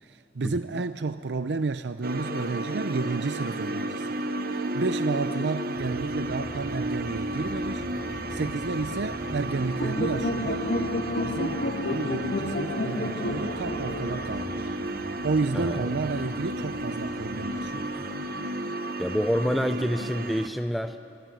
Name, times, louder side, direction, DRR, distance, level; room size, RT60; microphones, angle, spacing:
voice 1, 0.0-4.2 4.5-7.8 8.3-10.9 11.2-14.7 15.0-18.0, right 3 dB, 80° right, 12 dB, 0.6 m, -31 dB
sound 1, 2.0-20.5, right 1 dB, 55° right, 1.3 m, -33 dB
sound 2, 5.8-18.3, equal, 20° right, 3.2 m, -42 dB
sound 3, 9.8-15.2, left 1 dB, 60° left, 1.6 m, -31 dB
voice 2, 15.5-15.9 19.0-21.0, equal, ahead, 8 dB, 0.5 m, -27 dB
24.5 x 23.0 x 9.1 m, 2.9 s
head